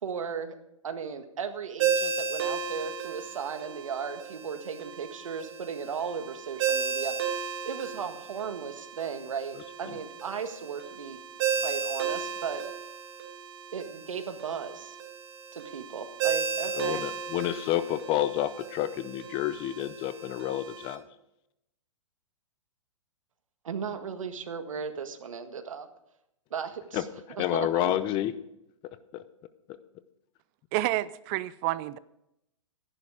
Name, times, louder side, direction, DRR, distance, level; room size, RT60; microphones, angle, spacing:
voice 1, 0.0-0.6 0.8-7.1 7.6-11.2 11.6-12.6 13.7-15.0 15.5-17.0 23.6-25.9 26.5-27.9, right 6 dB, 80° right, 7 dB, 1.7 m, -36 dB
Ringtone, 1.8-20.9, right 6 dB, 50° right, 2.3 m, -34 dB
voice 2, 16.8-21.0 26.9-27.0 27.4-28.3 29.1-29.2, left 13 dB, 30° left, 13 dB, 0.7 m, -29 dB
voice 3, 30.7-32.0, right 16 dB, 35° right, 18 dB, 0.5 m, -29 dB
13.0 x 11.0 x 4.9 m, 0.82 s
hypercardioid pair, 135°, 17 cm